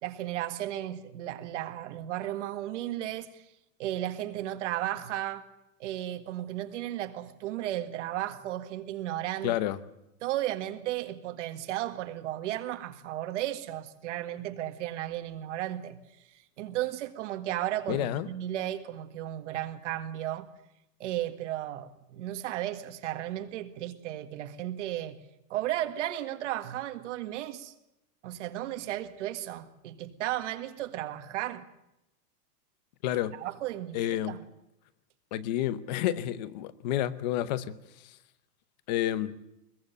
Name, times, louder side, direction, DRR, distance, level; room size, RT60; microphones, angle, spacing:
voice 1, 0.0-3.4 3.8-5.4 5.8-9.6 10.2-16.0 16.6-20.5 21.0-25.2 25.5-27.7 28.2-31.6 33.4-34.4, right 13 dB, 50° right, 1.8 m, -34 dB
voice 2, 9.4-9.8 17.9-18.3 33.0-33.4 33.9-34.4 35.3-37.8 38.0-38.2 38.9-39.3, left 12 dB, 30° left, 0.8 m, -30 dB
22.0 x 21.5 x 6.8 m
supercardioid pair, 175°, 48 cm